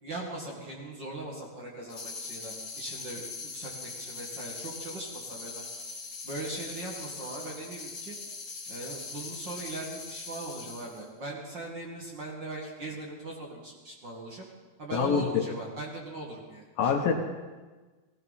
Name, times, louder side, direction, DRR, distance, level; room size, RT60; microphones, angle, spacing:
voice 1, 0.0-5.6 6.2-8.1 8.7-14.5 14.8-16.9, right 2 dB, 40° right, -2 dB, 1.8 m, -40 dB
sound 1, 1.9-11.1, left 4 dB, 25° left, 2.2 m, -41 dB
voice 2, 14.9-15.4 16.8-17.1, left 6 dB, 70° left, 3 dB, 2.5 m, -25 dB
18.0 x 16.5 x 4.2 m, 1.3 s
omnidirectional pair, 4.7 m